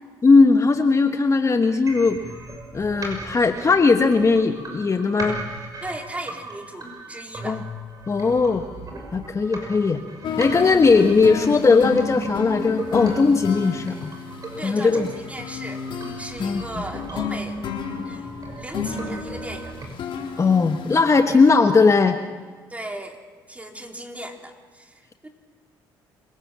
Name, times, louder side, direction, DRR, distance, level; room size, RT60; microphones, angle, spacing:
voice 1, 0.2-2.2 2.7-5.4 7.4-7.6 8.1-8.6 9.1-10.0 10.4-14.1 14.6-15.1 16.4-16.8 20.4-22.2, left 4 dB, 30° left, 7 dB, 1.2 m, -18 dB
sound 1, 1.9-19.9, right 1 dB, 40° right, 6.6 m, -38 dB
voice 2, 5.8-7.6 10.7-11.0 14.6-15.8 16.2-17.6 18.1-18.3 18.6-19.8 22.7-23.2 23.5-25.3, right 1 dB, 15° right, 2 dB, 3.7 m, -36 dB
sound 2, 10.2-21.0, left 5 dB, 60° left, 3.7 m, -32 dB
26.5 x 18.0 x 7.5 m, 1.5 s
supercardioid pair, 65°, 10 cm